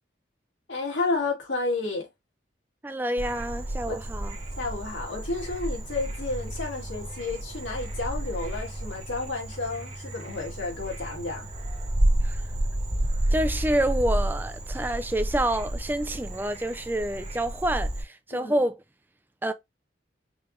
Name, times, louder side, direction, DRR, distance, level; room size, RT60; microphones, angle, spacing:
voice 1, 0.7-2.1 3.9-4.0 4.6-11.5 18.3-18.6, left 3 dB, 85° left, 2.5 m, -31 dB
voice 2, 2.8-4.4 12.2-12.4 13.3-18.8 19.4-19.5, right 1 dB, 10° right, 0.4 m, -28 dB
Frog, 3.2-18.0, right 1 dB, 35° right, 1.4 m, -31 dB
5.4 x 3.3 x 2.6 m
head